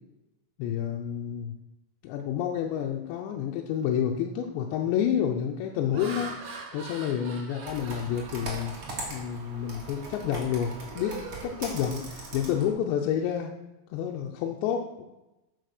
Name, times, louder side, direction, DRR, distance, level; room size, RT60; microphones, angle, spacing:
voice 1, 0.6-1.5 2.0-6.3 6.7-8.7 9.1-13.5 13.9-15.1, left 9 dB, 80° left, 1 dB, 2.8 m, -29 dB
Laughter, 3.8-4.1 4.7-5.0 5.6-9.4 9.8-10.1 10.5-12.4, right 3 dB, 65° right, 1.7 m, -44 dB
Computer keyboard, 7.6-12.7, right 3 dB, 40° right, 2.2 m, -40 dB
9.2 x 6.7 x 6.5 m, 0.99 s
omnidirectional pair, 5.4 m